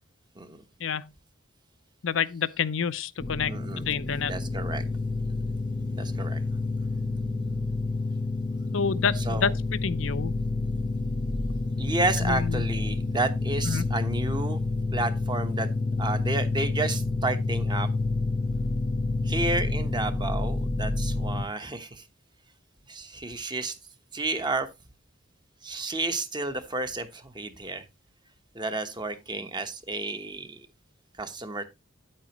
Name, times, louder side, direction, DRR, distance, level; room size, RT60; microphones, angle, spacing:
voice 1, 0.8-1.1 2.0-4.3 8.7-9.5 9.8-10.3 12.2-12.7 13.7-13.9, left 6 dB, 75° left, 0.6 m, -28 dB
sound 1, 3.2-21.5, left 3 dB, 20° left, 0.7 m, -29 dB
voice 2, 3.5-3.8 4.3-4.8 5.9-6.4 9.1-9.6 11.8-14.6 14.9-15.7 16.0-17.9 19.2-22.0 22.9-23.8 24.1-24.7 25.6-27.8 28.5-30.7 31.2-31.6, right 2 dB, 25° right, 1.1 m, -31 dB
9.6 x 8.6 x 3.0 m
head